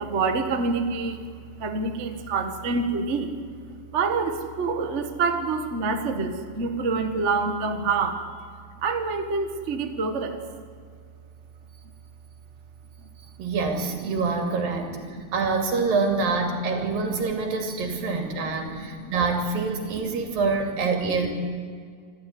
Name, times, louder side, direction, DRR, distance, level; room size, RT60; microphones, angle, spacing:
voice 1, 0.0-3.3 3.9-8.2 8.8-10.4 14.1-14.2 15.1-15.2 18.2-19.1 20.0-20.1, right 4 dB, 55° right, 6 dB, 0.8 m, -27 dB
voice 2, 13.4-15.0 15.3-21.3, right 4 dB, 75° right, 4 dB, 4.4 m, -26 dB
26.0 x 14.0 x 9.5 m, 2.1 s
omnidirectional pair, 4.0 m